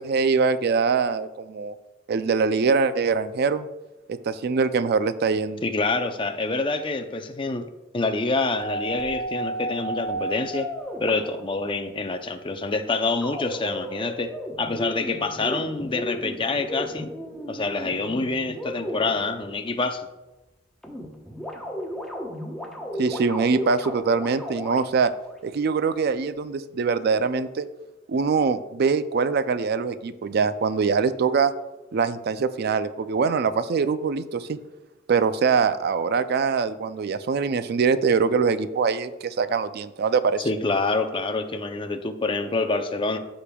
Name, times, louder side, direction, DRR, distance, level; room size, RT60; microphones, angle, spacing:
voice 1, 0.0-1.7 2.1-3.7 4.1-5.6 23.0-25.1 25.4-27.6 28.1-31.5 31.9-34.6 35.1-40.5, right 5 dB, 55° right, 13 dB, 0.4 m, -23 dB
voice 2, 5.6-7.7 7.9-10.7 11.0-14.3 14.6-17.1 17.5-20.1 40.4-43.2, left 3 dB, 25° left, 7 dB, 0.5 m, -26 dB
sound 1, 8.6-11.7 13.2-19.7 20.8-25.3, right 1 dB, ahead, 0.9 m, -34 dB
13.5 x 5.1 x 2.3 m, 1.1 s
head